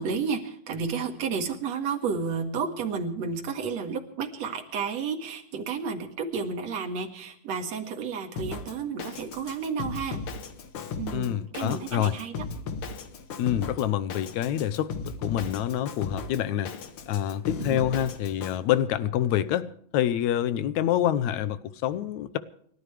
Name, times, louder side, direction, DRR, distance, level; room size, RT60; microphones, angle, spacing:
voice 1, 0.0-10.2 11.0-12.5 17.6-17.8, right 5 dB, 60° right, 4 dB, 2.9 m, -31 dB
Drum kit, 8.4-18.6, left 4 dB, 55° left, 1.8 m, -37 dB
voice 2, 11.1-12.2 13.4-16.7 17.1-19.7 19.9-22.4, left 11 dB, 75° left, 14 dB, 2.1 m, -27 dB
29.5 x 13.0 x 3.3 m, 0.64 s
omnidirectional pair, 3.5 m